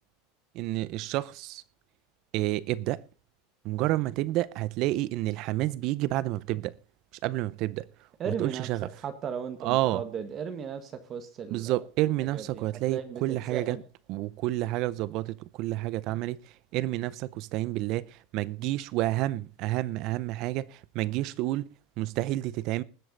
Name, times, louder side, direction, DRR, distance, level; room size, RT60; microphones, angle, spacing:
voice 1, 0.5-1.6 2.3-3.0 3.6-6.8 7.2-7.9 8.3-8.9 9.6-10.0 11.5-13.8 14.1-21.7 22.0-22.8, right 16 dB, 50° right, 0.7 m, -29 dB
voice 2, 8.2-11.7 12.3-13.8, right 7 dB, 30° right, 1.5 m, -36 dB
20.0 x 7.8 x 3.9 m
supercardioid pair, 135°, 0 cm